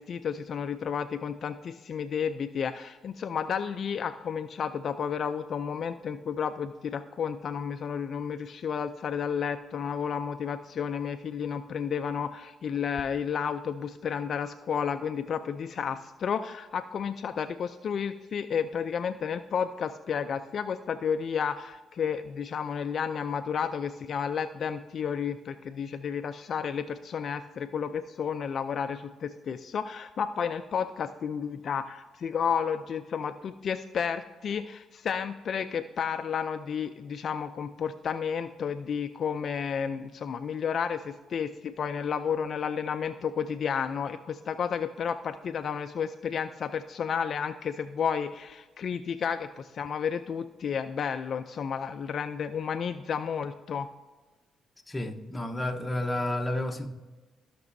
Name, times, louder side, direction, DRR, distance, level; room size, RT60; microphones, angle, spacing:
voice 1, 0.0-53.9, left 7 dB, 55° left, 0.4 m, -32 dB
voice 2, 54.9-56.9, left 1 dB, 15° left, 1.0 m, -31 dB
15.0 x 6.0 x 2.7 m
cardioid pair, 90°, 0 cm